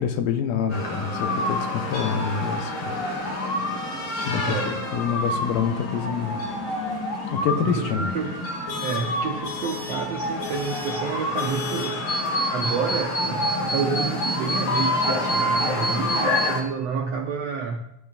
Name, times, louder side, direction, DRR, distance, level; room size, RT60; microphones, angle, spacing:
voice 1, 0.0-3.0 4.3-6.4 7.3-8.0, left 7 dB, 80° left, 7 dB, 2.5 m, -27 dB
sound 1, 0.7-16.6, left 1 dB, 40° left, 1.9 m, -27 dB
voice 2, 4.4-4.9 7.6-8.4 8.8-12.2 12.5-17.8, right 5 dB, 75° right, 2 dB, 1.5 m, -29 dB
19.0 x 11.5 x 2.4 m, 0.81 s
omnidirectional pair, 3.9 m